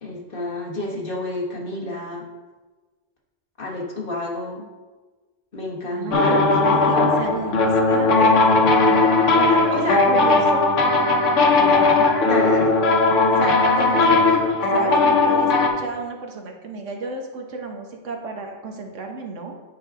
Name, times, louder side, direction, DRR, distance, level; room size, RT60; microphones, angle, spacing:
voice 1, 0.0-2.2 3.6-4.6 5.5-6.4 9.7-10.0 12.0-12.8, left 2 dB, 45° left, -2 dB, 1.5 m, -29 dB
voice 2, 5.9-10.7 11.6-11.9 13.3-14.5 14.7-19.6, right 3 dB, 80° right, 3 dB, 1.3 m, -32 dB
sound 1, 6.1-15.7, left 3 dB, 80° left, 1.2 m, -17 dB
8.9 x 4.8 x 3.6 m, 1.3 s
omnidirectional pair, 1.3 m